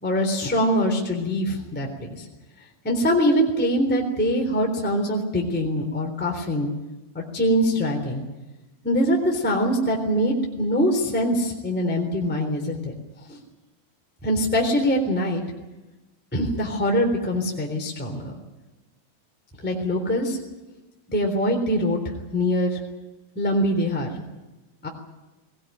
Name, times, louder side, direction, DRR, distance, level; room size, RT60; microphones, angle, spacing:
voice 1, 0.0-2.2 2.8-6.7 7.1-8.2 8.8-12.9 13.3-13.4 14.2-15.4 16.3-18.3 19.6-20.4 21.1-22.8 23.3-24.2 24.8-24.9, equal, 5° left, 1 dB, 3.2 m, -23 dB
20.5 x 20.0 x 9.3 m, 1.1 s
omnidirectional pair, 4.3 m